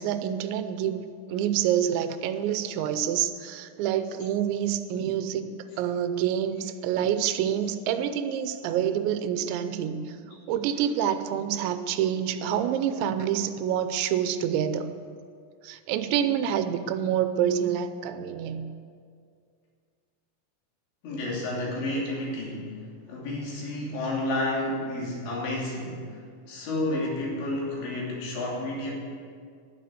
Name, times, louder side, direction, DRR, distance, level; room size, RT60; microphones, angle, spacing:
voice 1, 0.0-10.2 10.5-14.9 15.6-18.7, right 9 dB, 85° right, 10 dB, 3.0 m, -27 dB
voice 2, 21.0-22.7 23.1-26.2 26.5-28.9, left 1 dB, 75° left, -3 dB, 5.1 m, -31 dB
12.0 x 10.0 x 7.9 m, 2.2 s
omnidirectional pair, 5.2 m